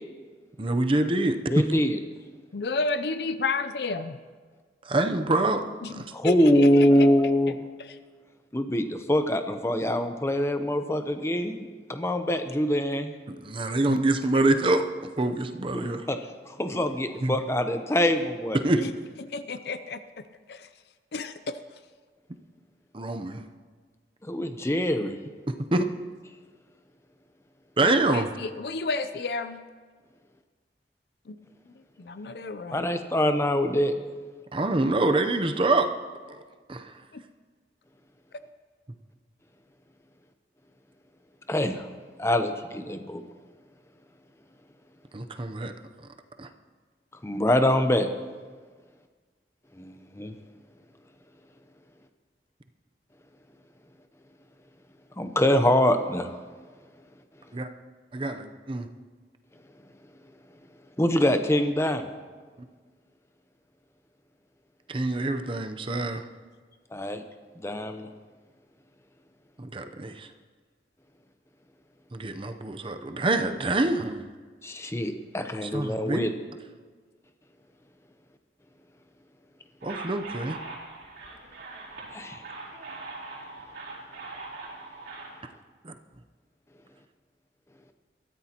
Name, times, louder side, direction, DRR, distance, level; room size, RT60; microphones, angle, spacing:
voice 1, 0.6-1.7 4.9-6.1 13.3-16.0 17.2-17.4 18.5-18.9 22.9-23.4 25.5-25.8 27.8-28.3 34.5-35.9 36.3-36.4 36.7-36.9 45.1-45.7 46.4-46.5 57.5-57.7 58.1-58.9 64.9-66.3 69.6-70.3 72.1-74.2 75.6-76.3 79.8-80.6 85.8-85.9, right 2 dB, 30° right, 8 dB, 0.7 m, -26 dB
voice 2, 1.5-2.0 6.1-7.6 8.5-13.1 15.7-16.2 16.6-18.6 24.3-25.1 32.7-33.9 41.5-41.9 42.2-43.2 47.2-48.1 49.8-50.3 55.2-56.3 61.0-62.1 66.9-67.2 67.6-68.1 74.6-76.3 82.1-82.4, left 1 dB, 15° left, 7 dB, 0.8 m, -24 dB
voice 3, 2.5-4.2 5.8-7.1 7.8-8.0 13.9-14.0 14.3-14.4 18.8-18.9 19.2-20.0 20.5-20.7 21.1-21.6 27.8-29.6 31.3-31.4 32.0-32.9 37.1-37.2, left 3 dB, 65° left, 11 dB, 0.5 m, -31 dB
sound 1, 79.8-85.3, right 3 dB, 65° right, 4.3 m, -41 dB
22.0 x 13.5 x 3.0 m, 1.5 s
head